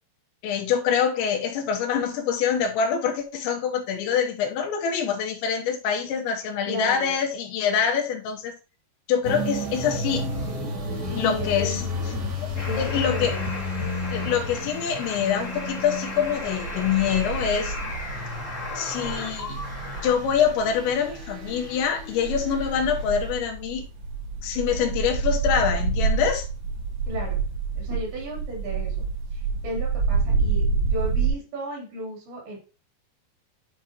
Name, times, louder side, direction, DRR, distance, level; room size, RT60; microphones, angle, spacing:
voice 1, 0.4-8.5 9.1-10.3 11.2-11.8 12.4-12.5 12.8-13.4 14.1-17.8 18.8-19.6 20.0-23.9 24.4-26.5, left 7 dB, 90° left, 3.4 m, -25 dB
voice 2, 6.7-7.1 11.1-12.3 12.6-13.5 27.1-27.4 27.7-29.1 29.3-32.6, right 1 dB, 75° right, 5.9 m, -35 dB
sound 1, 9.2-23.3, left 2 dB, 35° right, 1.5 m, -33 dB
sound 2, 12.5-20.2, left 2 dB, 45° left, 1.0 m, -36 dB
sound 3, 12.5-13.1 13.5-14.8 15.3-31.3, right 4 dB, 55° right, 1.9 m, -29 dB
11.5 x 4.9 x 3.0 m
omnidirectional pair, 5.2 m